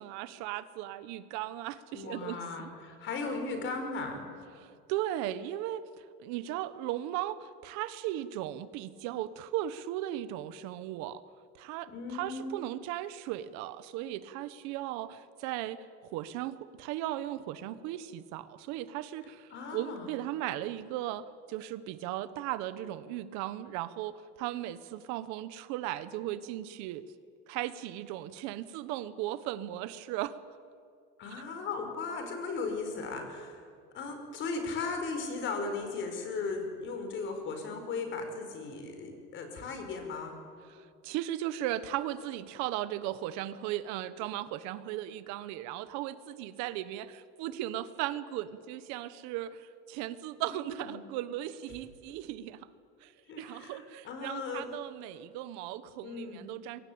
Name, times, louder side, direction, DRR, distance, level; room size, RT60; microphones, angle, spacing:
voice 1, 0.0-2.7 4.6-5.8 6.2-11.2 11.5-27.0 27.5-30.4 40.7-52.6 53.0-56.8, right 13 dB, 75° right, 14 dB, 1.3 m, -37 dB
voice 2, 1.9-4.2 11.9-12.5 19.5-20.1 31.2-33.6 33.9-40.3 50.4-51.1 53.3-54.6 56.0-56.5, left 4 dB, 40° left, 5 dB, 5.2 m, -37 dB
26.5 x 23.0 x 8.8 m, 2.3 s
cardioid pair, 170°, 29 cm